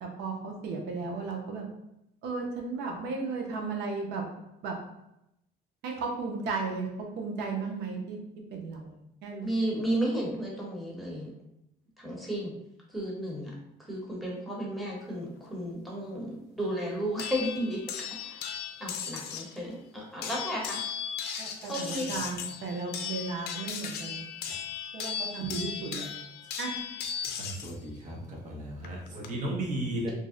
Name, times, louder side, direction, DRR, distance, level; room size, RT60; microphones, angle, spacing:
voice 1, 0.0-1.6 2.2-4.2 4.6-4.8 5.8-8.2 8.5-8.9 9.2-9.5 21.4-24.2 24.9-26.0 26.6-26.8, right 4 dB, 80° right, 1 dB, 0.6 m, -35 dB
voice 2, 9.4-11.3 12.0-12.5 12.9-13.5 13.8-18.4 18.8-20.8 21.6-22.1, right 1 dB, ahead, -4 dB, 1.0 m, -33 dB
sound 1, 17.2-19.6 20.2-27.7 28.8-29.3, left 7 dB, 70° left, 0.4 m, -37 dB
voice 3, 27.4-28.2 28.4-30.1, right 1 dB, 45° right, -2 dB, 0.8 m, -34 dB
2.6 x 2.0 x 3.7 m, 0.80 s
cardioid pair, 110°, 17 cm